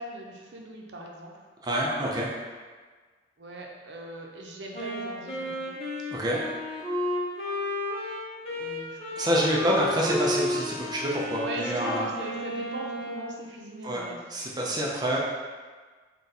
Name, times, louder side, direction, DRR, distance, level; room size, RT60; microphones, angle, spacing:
voice 1, 0.0-1.3 3.4-5.8 8.5-9.0 11.4-14.3, right 1 dB, 85° right, 0 dB, 0.6 m, -40 dB
voice 2, 1.6-2.3 6.1-6.4 9.2-12.1 13.8-14.0 14.3-15.2, equal, 25° right, -4 dB, 0.4 m, -27 dB
Wind instrument woodwind instrument, 4.7-13.4, left 1 dB, 35° left, 0.8 m, -33 dB
3.9 x 2.3 x 4.0 m, 1.5 s
head